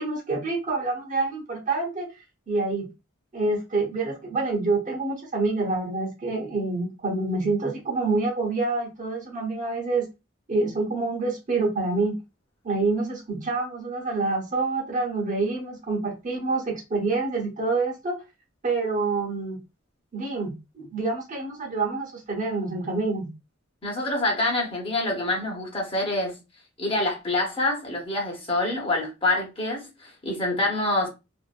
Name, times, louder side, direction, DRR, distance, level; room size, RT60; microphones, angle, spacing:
voice 1, 0.0-2.9 3.3-10.1 10.5-12.1 12.6-18.2 18.6-19.6 20.1-23.3, right 3 dB, 40° right, 0.9 m, -27 dB
voice 2, 23.8-26.4 26.8-31.1, left 2 dB, 30° left, 0.9 m, -26 dB
2.6 x 2.4 x 2.4 m
head